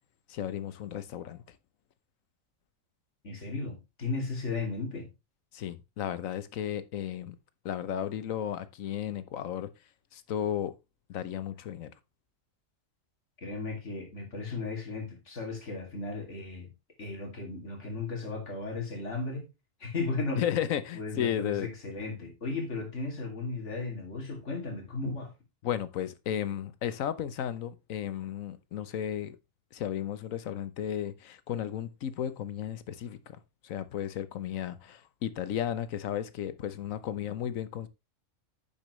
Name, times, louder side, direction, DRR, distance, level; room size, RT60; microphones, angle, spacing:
voice 1, 0.3-1.4 5.5-7.4 7.6-9.7 10.1-10.7 11.1-11.9 20.4-21.7 25.6-29.4 29.7-33.4 33.6-37.9, left 10 dB, 85° left, 1.2 m, -34 dB
voice 2, 3.2-5.1 13.4-16.7 17.0-19.5 19.8-20.4 20.9-25.3, left 3 dB, 60° left, 3.0 m, -35 dB
10.0 x 7.1 x 3.1 m
omnidirectional pair, 1.4 m